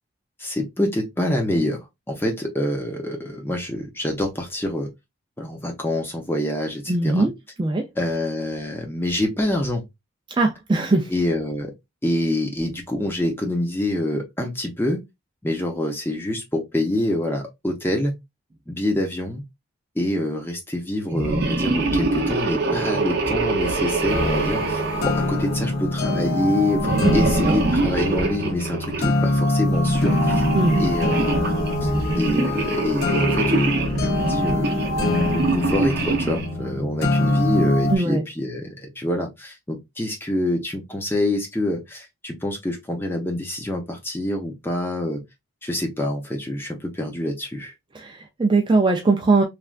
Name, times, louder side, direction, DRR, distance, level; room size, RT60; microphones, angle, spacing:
voice 1, 0.4-4.9 5.4-7.3 8.0-9.8 11.1-11.7 12.0-15.0 15.4-18.2 18.7-19.4 20.0-30.5 30.8-45.2 45.6-47.7, left 1 dB, 10° left, 0.6 m, -26 dB
voice 2, 6.9-7.3 7.6-7.8 10.4-11.1 27.0-27.6 30.5-30.8 37.9-38.2 47.9-49.4, right 3 dB, 20° right, 0.3 m, -20 dB
sound 1, 21.1-25.9 26.8-29.1 29.7-36.5, right 3 dB, 50° right, 0.7 m, -25 dB
sound 2, 24.1-38.0, left 1 dB, 50° left, 0.7 m, -24 dB
3.2 x 2.4 x 2.3 m
head